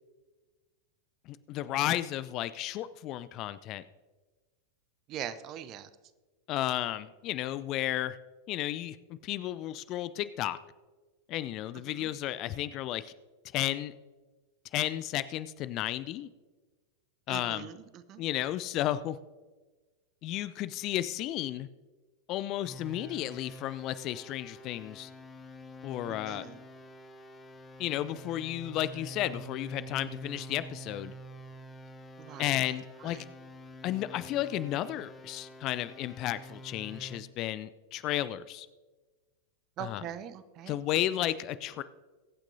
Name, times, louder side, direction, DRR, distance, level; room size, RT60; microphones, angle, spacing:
voice 1, 1.3-3.8 6.5-8.2 8.5-10.6 11.3-13.1 13.5-13.9 14.7-16.3 17.3-17.7 18.2-19.2 20.2-21.7 22.3-25.1 25.8-26.5 27.8-31.1 32.4-33.2 33.8-38.7 39.8-40.1 40.7-41.8, left 13 dB, 40° left, 15 dB, 0.5 m, -33 dB
voice 2, 5.1-5.9 11.9-12.1 17.3-17.8 18.1-18.2 26.1-26.6 32.2-32.6 33.1-33.2 39.8-40.7, right 10 dB, 35° right, 13 dB, 0.7 m, -41 dB
sound 1, 22.6-37.2, equal, 20° left, 1.0 m, -47 dB
23.0 x 8.9 x 2.7 m, 1.3 s
figure-of-eight pair, 90°, 0 cm